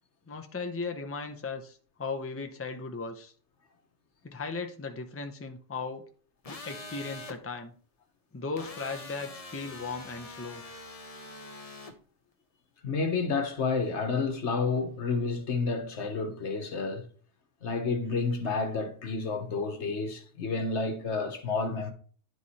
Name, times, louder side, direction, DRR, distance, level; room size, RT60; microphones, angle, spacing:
voice 1, 0.3-3.3 4.2-6.1 6.5-7.7 8.3-10.6, left 4 dB, 15° left, 0.7 m, -37 dB
sound 1, 6.4-7.4 8.6-11.9, left 2 dB, 35° left, 1.0 m, -44 dB
voice 2, 12.8-17.0 17.6-21.9, left 4 dB, 75° left, 1.4 m, -30 dB
10.5 x 4.7 x 4.2 m
omnidirectional pair, 1.2 m